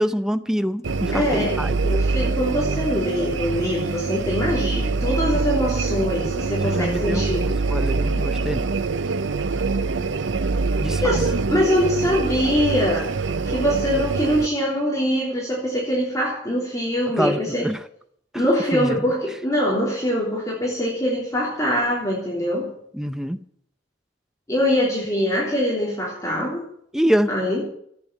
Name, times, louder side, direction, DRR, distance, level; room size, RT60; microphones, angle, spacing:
voice 1, 0.0-1.8 6.6-8.7 10.8-11.0 17.2-17.8 18.7-19.0 22.9-23.4 26.9-27.3, equal, 5° right, 11 dB, 0.6 m, -25 dB
sound 1, 0.8-14.5, right 3 dB, 75° right, 0.7 m, -24 dB
voice 2, 1.1-1.6 1.8-7.5 11.0-13.1 13.4-17.7 18.3-22.7 24.5-26.6 27.3-27.6, equal, 15° left, -4 dB, 3.4 m, -23 dB
14.5 x 9.2 x 8.9 m, 0.69 s
head